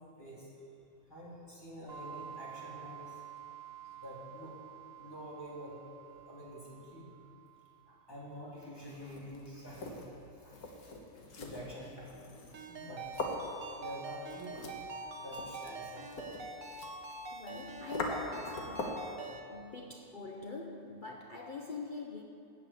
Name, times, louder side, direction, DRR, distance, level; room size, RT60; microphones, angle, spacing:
voice 1, 0.2-0.5 1.1-3.2 3.9-4.5 5.0-5.8 6.1-7.1 7.9-10.1 10.4-10.9 11.1-12.1 12.6-13.2 13.7-14.6 15.2-16.0 18.0-18.3 19.3-19.4, equal, 15° left, -7 dB, 3.0 m, -47 dB
sound 1, 1.9-8.4, right 10 dB, 40° right, 0.7 m, -50 dB
sound 2, 8.9-19.1, left 2 dB, 70° left, 1.7 m, -43 dB
Ringtone, 12.5-19.4, right 2 dB, 60° right, 1.4 m, -44 dB
voice 2, 17.3-18.2 18.7-18.9 19.5-22.2, left 3 dB, 45° left, 0 dB, 0.7 m, -43 dB
13.5 x 5.7 x 8.4 m, 2.7 s
omnidirectional pair, 1.6 m